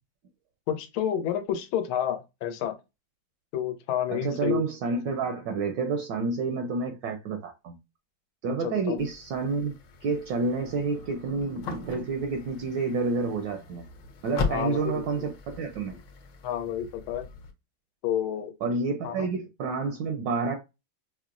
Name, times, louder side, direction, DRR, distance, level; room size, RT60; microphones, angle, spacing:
voice 1, 0.7-2.8 3.5-4.6 8.6-9.0 14.5-15.3 16.4-17.3 18.0-18.5 19.0-19.3, left 10 dB, 90° left, 1.5 m, -30 dB
voice 2, 4.1-7.8 8.4-9.7 10.0-13.8 14.2-16.0 18.6-20.6, right 4 dB, 75° right, 1.2 m, -29 dB
sound 1, 9.0-17.5, left 5 dB, 75° left, 1.4 m, -39 dB
5.6 x 2.0 x 2.4 m
omnidirectional pair, 2.2 m